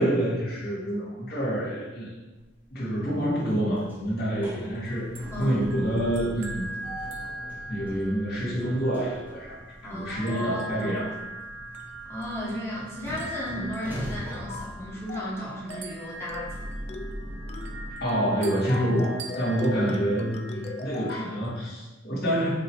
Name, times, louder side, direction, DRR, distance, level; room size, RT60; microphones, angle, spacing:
voice 1, 0.0-2.1 2.7-5.1 5.4-6.9 7.7-9.6 9.9-11.1 18.0-22.5, right 1 dB, 50° left, -7 dB, 2.0 m, -27 dB
sound 1, 2.4-2.9 3.3-17.9, equal, 10° right, 0.9 m, -40 dB
sound 2, 4.7-21.6, right 2 dB, 70° right, 0.8 m, -42 dB
voice 2, 9.8-10.9 12.1-16.7 20.5-21.2, equal, 15° left, -6 dB, 1.4 m, -35 dB
sound 3, 14.5-14.8 15.1-15.4 15.7-16.0 16.3-16.6 16.9-17.2 17.5-17.8 18.1-18.3 18.7-21.3, left 3 dB, 30° left, 0.3 m, -39 dB
7.4 x 3.1 x 4.4 m, 1.1 s
head